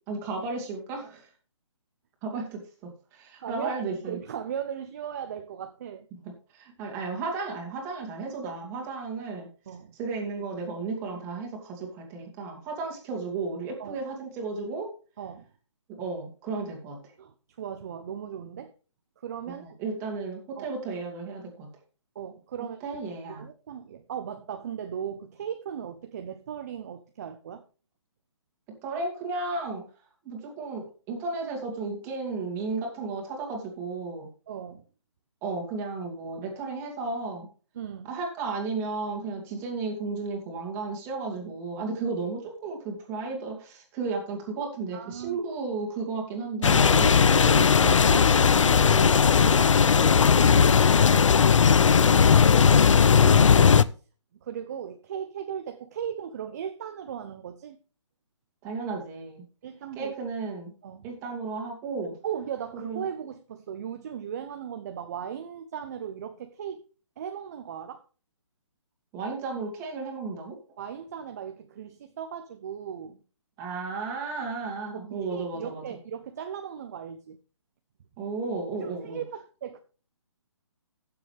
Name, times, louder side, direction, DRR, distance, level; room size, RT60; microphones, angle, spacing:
voice 1, 0.1-1.3 2.2-4.2 6.5-9.5 9.9-14.9 15.9-17.0 19.5-21.7 22.8-23.5 28.8-29.8 30.2-34.3 35.4-37.5 38.0-47.1 47.5-47.7 51.8-52.7 58.6-59.4 60.0-60.7 61.0-62.2 62.8-63.0 69.1-70.6 73.6-75.8 78.2-79.2, right 4 dB, 15° right, 2.6 m, -34 dB
voice 2, 3.4-3.8 4.0-6.1 9.7-9.9 13.8-14.0 15.2-15.4 17.2-18.7 19.2-19.8 20.6-20.7 22.1-22.8 23.3-27.6 34.5-34.8 37.7-38.1 44.9-45.4 47.0-50.8 52.7-52.8 53.2-53.8 54.4-57.8 59.6-60.1 60.8-61.1 62.2-66.8 67.2-68.0 70.8-73.2 75.1-77.4 78.7-79.8, right 8 dB, 30° right, 0.7 m, -37 dB
sound 1, 46.6-53.8, left 6 dB, 80° left, 0.6 m, -18 dB
15.5 x 7.0 x 3.4 m
hypercardioid pair, 165°, 16 cm